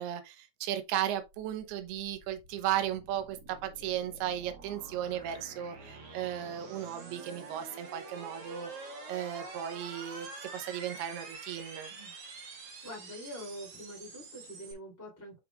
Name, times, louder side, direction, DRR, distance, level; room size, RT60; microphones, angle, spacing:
voice 1, 0.0-11.9, right 11 dB, 80° right, 2.9 m, -35 dB
sound 1, 1.1-14.7, right 4 dB, 50° right, 2.2 m, -47 dB
voice 2, 12.8-15.4, equal, 5° left, 2.2 m, -45 dB
7.8 x 5.8 x 2.4 m
omnidirectional pair, 4.7 m